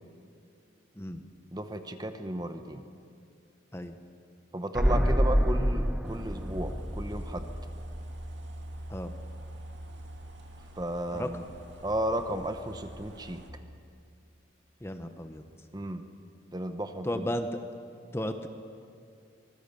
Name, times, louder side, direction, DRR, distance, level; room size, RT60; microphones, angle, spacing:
voice 1, 1.5-2.8 4.5-7.5 10.8-11.4 11.8-13.4 15.7-16.0 16.5-17.3, right 1 dB, 20° right, 8 dB, 1.0 m, -34 dB
sound 1, 4.7-8.5 8.8-8.9, equal, 5° right, 0.5 m, -28 dB
sound 2, 6.0-13.5, equal, 70° right, 2.4 m, -44 dB
voice 2, 14.8-15.4 17.0-17.5 18.1-18.5, left 1 dB, 15° left, 7 dB, 0.9 m, -34 dB
24.5 x 20.0 x 6.9 m, 2.4 s
head